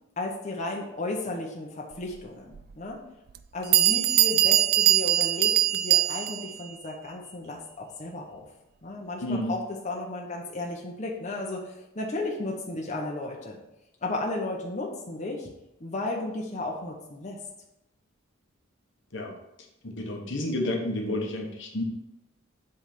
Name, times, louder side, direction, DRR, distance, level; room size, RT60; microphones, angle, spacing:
voice 1, 0.2-3.0 3.5-8.5 8.8-13.6 14.0-15.5 15.8-17.4, left 2 dB, 35° left, -2 dB, 1.1 m, -34 dB
Bell, 2.5-2.6 3.3-3.4 3.7-6.5, right 12 dB, 45° right, 0.3 m, -22 dB
voice 2, 9.2-9.5 19.1-19.3 19.8-21.8, left 1 dB, 60° left, 1 dB, 1.2 m, -30 dB
7.9 x 3.5 x 5.9 m, 0.88 s
head